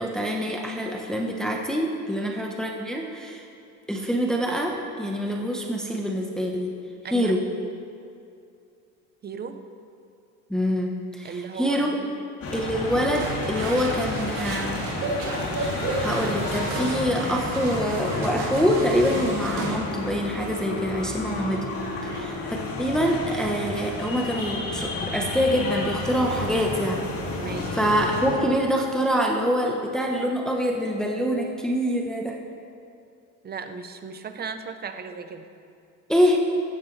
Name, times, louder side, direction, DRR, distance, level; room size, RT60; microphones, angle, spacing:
voice 1, 0.0-3.5 3.9-6.7 7.1-7.4 10.5-12.0 12.5-14.8 15.6-21.7 22.1-27.0 27.7-32.4 36.1-36.4, equal, ahead, 0 dB, 1.0 m, -25 dB
voice 2, 7.0-7.3 9.2-9.6 11.2-12.1 22.0-22.3 27.4-27.8 33.4-35.5, right 5 dB, 30° right, 8 dB, 0.8 m, -36 dB
sound 1, 12.4-28.4, left 2 dB, 40° left, 2.6 m, -31 dB
sound 2, 13.2-19.8, right 2 dB, 70° right, 3.6 m, -32 dB
16.0 x 13.0 x 3.3 m, 2.5 s
cardioid pair, 120°, 34 cm